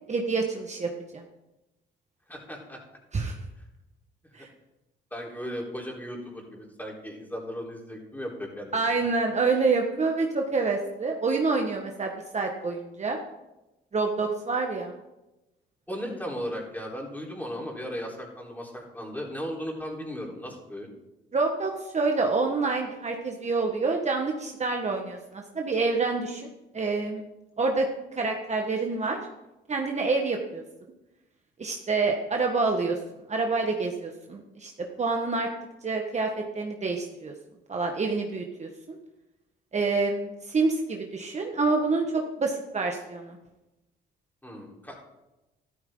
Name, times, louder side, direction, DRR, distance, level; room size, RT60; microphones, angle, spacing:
voice 1, 0.1-1.2 3.1-3.4 4.3-4.5 8.7-13.2 13.9-14.9 21.3-26.5 26.7-27.2 27.6-27.9 28.2-29.2 29.7-30.6 31.6-33.0 33.3-34.7 35.0-35.5 35.8-37.3 37.7-39.0 39.7-43.4, right 3 dB, 35° right, 2 dB, 1.6 m, -27 dB
voice 2, 2.3-2.8 4.4-4.5 5.1-9.1 15.9-20.9 44.4-45.0, equal, 10° left, -2 dB, 4.1 m, -36 dB
13.5 x 13.0 x 3.9 m, 0.98 s
cardioid pair, 90°, 20 cm